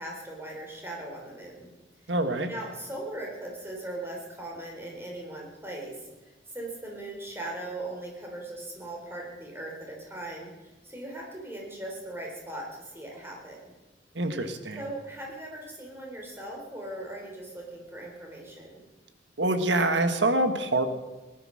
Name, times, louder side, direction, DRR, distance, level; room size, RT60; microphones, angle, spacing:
voice 1, 0.0-1.7 2.0-2.1 2.5-13.6 14.8-18.8, right 1 dB, 15° right, -1 dB, 3.7 m, -39 dB
voice 2, 2.1-2.5 14.1-14.8 19.4-20.8, right 2 dB, 75° right, 8 dB, 1.5 m, -25 dB
19.0 x 11.0 x 6.4 m, 1.1 s
head